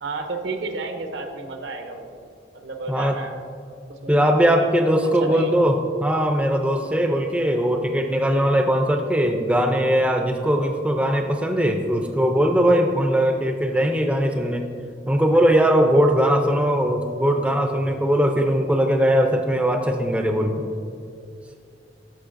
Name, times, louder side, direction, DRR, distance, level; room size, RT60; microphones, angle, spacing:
voice 1, 0.0-2.1 2.5-3.4 3.9-4.2 4.6-4.7 5.2-5.6, right 3 dB, 75° right, 5 dB, 0.7 m, -31 dB
voice 2, 2.9-3.2 4.1-14.7 15.1-20.6, equal, 5° right, 4 dB, 0.4 m, -20 dB
13.0 x 5.1 x 2.5 m, 2.4 s
head